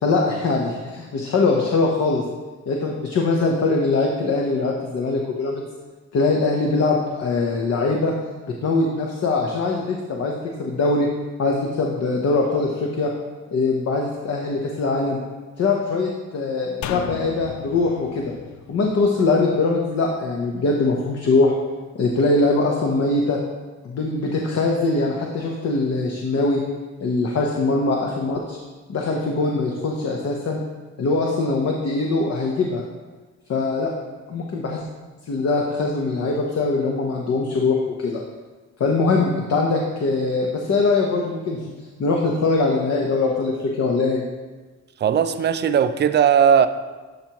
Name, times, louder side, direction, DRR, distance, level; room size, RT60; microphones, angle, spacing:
voice 1, 0.0-2.2 2.7-5.6 6.1-8.1 8.6-11.1 11.4-13.1 13.5-15.2 15.6-18.3 18.7-21.5 21.9-23.4 23.8-26.6 27.0-28.6 28.9-30.6 31.0-32.8 33.5-33.9 34.3-34.8 35.3-38.2 38.8-41.6 42.0-44.2, left 3 dB, 55° left, 0 dB, 0.9 m, -22 dB
sound 1, 16.8-20.2 20.5-20.6, left 9 dB, 70° left, 0.5 m, -35 dB
voice 2, 45.0-46.7, right 8 dB, 35° right, 10 dB, 0.5 m, -17 dB
11.5 x 4.6 x 3.0 m, 1.3 s
cardioid pair, 90°, 30 cm